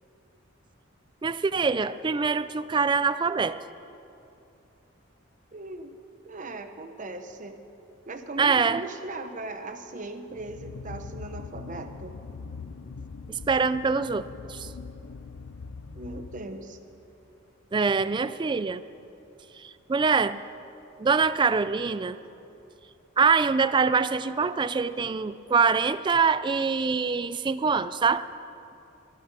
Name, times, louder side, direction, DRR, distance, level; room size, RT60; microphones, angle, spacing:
voice 1, 1.2-3.6 8.4-8.8 13.3-14.7 17.7-18.8 19.6-20.4 21.0-22.2 23.2-28.3, right 5 dB, 25° right, 14 dB, 0.3 m, -24 dB
voice 2, 5.5-5.9 6.2-7.6 8.0-12.2 15.9-16.8, right 2 dB, 40° right, 8 dB, 0.9 m, -38 dB
sound 1, 10.3-16.9, left 4 dB, 85° left, 0.5 m, -42 dB
22.5 x 9.2 x 5.5 m, 2.8 s
head